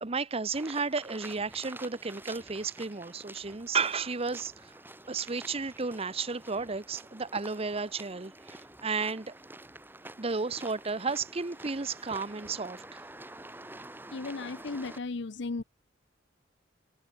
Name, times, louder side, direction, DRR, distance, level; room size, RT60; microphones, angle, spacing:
voice 1, 0.0-4.7 5.1-9.3 10.2-13.0, right 4 dB, 30° right, 0.9 m, -33 dB
sound 1, 0.5-15.0, right 2 dB, 10° right, 3.4 m, -48 dB
voice 2, 14.1-15.6, left 3 dB, 65° left, 0.7 m, -35 dB
head